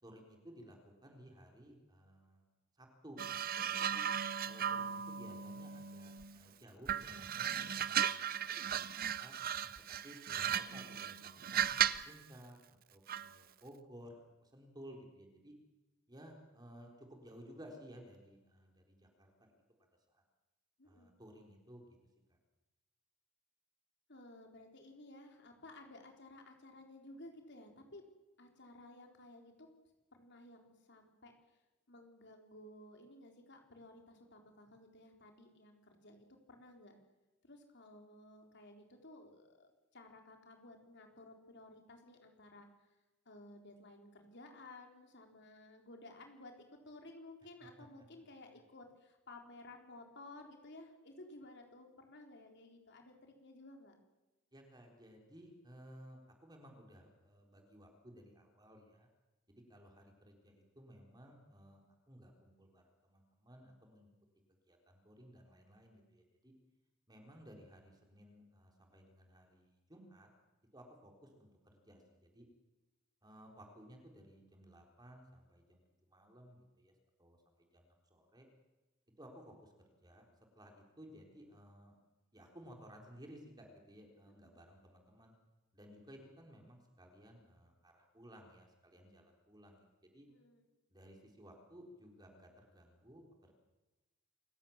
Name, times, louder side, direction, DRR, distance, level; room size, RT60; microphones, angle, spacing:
voice 1, 0.0-2.4 2.8-4.0 4.4-9.4 9.9-12.6 12.9-15.5 16.1-19.5 20.1-20.2 20.8-21.9 22.3-22.4 54.5-59.1 59.5-64.1 64.5-66.5 67.1-70.3 70.7-71.5 71.9-72.5 73.2-75.8 76.1-76.9 77.2-78.5 79.2-79.7 80.0-80.2 80.5-81.9 82.3-85.3 85.7-89.8 90.1-90.3 90.9-93.5, equal, 20° right, 2 dB, 4.1 m, -57 dB
sound 1, 3.2-6.4 6.9-12.1 13.1-13.3, right 9 dB, 45° right, 0.8 m, -36 dB
voice 2, 20.8-21.1 24.1-28.0 28.4-29.7 30.1-31.3 31.9-37.0 37.4-42.7 43.3-54.0 84.3-84.6 90.3-90.6, left 2 dB, 55° left, 3 dB, 4.1 m, -56 dB
27.5 x 16.0 x 7.4 m, 1.1 s
head